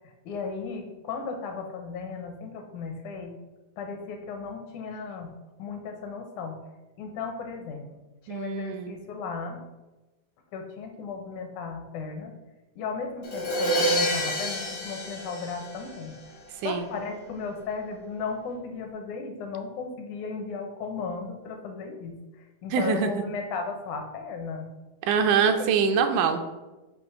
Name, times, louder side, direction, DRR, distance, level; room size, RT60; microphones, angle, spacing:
voice 1, 0.3-3.3 3.8-5.3 5.6-6.6 7.0-9.6 10.5-12.3 12.8-16.1 16.6-22.2 22.6-24.7 25.6-25.7, left 5 dB, 75° left, 4 dB, 2.2 m, -35 dB
voice 2, 8.3-9.0 16.6-16.9 22.7-23.2 25.0-26.4, right 6 dB, 85° right, 6 dB, 2.1 m, -24 dB
Crash cymbal, 13.2-16.2, equal, 60° left, 0.8 m, -28 dB
7.8 x 2.9 x 5.9 m, 1.1 s
omnidirectional pair, 3.5 m